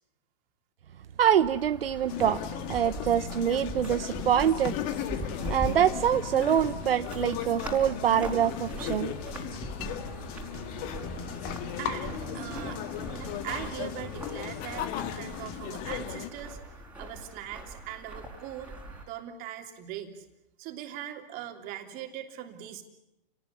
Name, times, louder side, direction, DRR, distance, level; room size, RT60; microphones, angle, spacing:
voice 1, 1.2-2.4 2.7-4.8 5.5-9.1, right 9 dB, 75° right, 11 dB, 1.0 m, -25 dB
sound 1, 1.4-19.0, right 1 dB, 5° right, 4.5 m, -41 dB
sound 2, 2.1-16.3, left 10 dB, 30° left, 1.7 m, -36 dB
voice 2, 11.8-12.8 13.1-16.6 17.0-18.7 19.1-20.2 20.6-22.8, right 11 dB, 30° right, 5 dB, 3.3 m, -40 dB
29.0 x 19.0 x 9.8 m, 0.87 s
hypercardioid pair, 140°, 29 cm